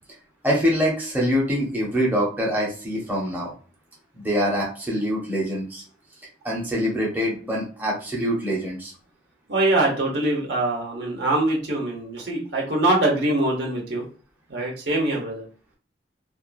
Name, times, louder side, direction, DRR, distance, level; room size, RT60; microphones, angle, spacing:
voice 1, 0.4-3.5 4.1-5.8 6.4-8.9, equal, 10° right, -4 dB, 0.7 m, -24 dB
voice 2, 9.5-14.0 14.5-15.4, right 2 dB, 65° right, -1 dB, 1.0 m, -23 dB
2.8 x 2.4 x 2.5 m, 0.39 s
head